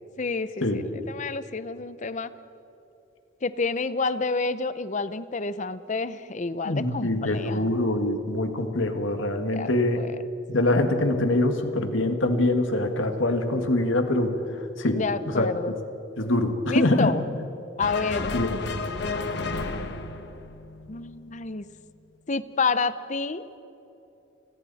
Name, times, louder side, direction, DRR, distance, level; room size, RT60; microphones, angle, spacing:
voice 1, 0.2-2.3 3.4-7.7 9.5-10.2 15.0-15.8 16.7-17.2 17.8-18.3 20.9-21.7 22.3-23.4, left 4 dB, 40° left, 14 dB, 0.7 m, -29 dB
voice 2, 6.7-10.0 10.5-14.4 14.8-15.0 15.4-15.5 16.2-17.1 18.3-18.6, left 1 dB, 75° left, 6 dB, 1.9 m, -24 dB
sound 1, 17.8-21.3, left 3 dB, 60° left, 1.2 m, -32 dB
29.0 x 21.5 x 4.2 m, 3.0 s
head